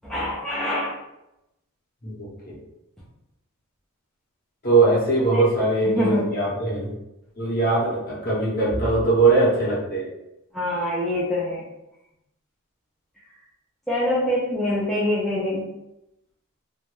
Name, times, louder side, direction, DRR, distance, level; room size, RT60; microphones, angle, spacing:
voice 1, 0.0-0.9 5.3-5.4 5.9-6.3 10.5-11.6 13.9-15.7, left 1 dB, ahead, -8 dB, 0.4 m, -25 dB
voice 2, 2.0-2.5 4.6-6.9 7.4-10.0, right 3 dB, 45° left, -6 dB, 1.0 m, -21 dB
2.6 x 2.1 x 3.1 m, 0.88 s
head